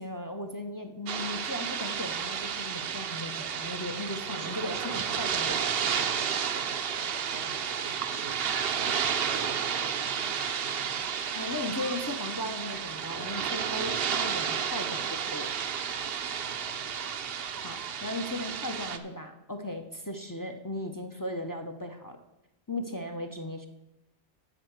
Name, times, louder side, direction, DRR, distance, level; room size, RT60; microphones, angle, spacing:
voice 1, 0.0-5.6 11.3-15.5 17.6-22.2 22.7-23.7, left 1 dB, 20° left, 5 dB, 0.7 m, -37 dB
sound 1, 1.1-19.0, right 7 dB, 65° right, 0.9 m, -32 dB
voice 2, 4.3-11.2 16.3-16.9, right 4 dB, 90° right, 6 dB, 1.4 m, -47 dB
8.9 x 5.7 x 7.9 m, 0.93 s
omnidirectional pair, 1.1 m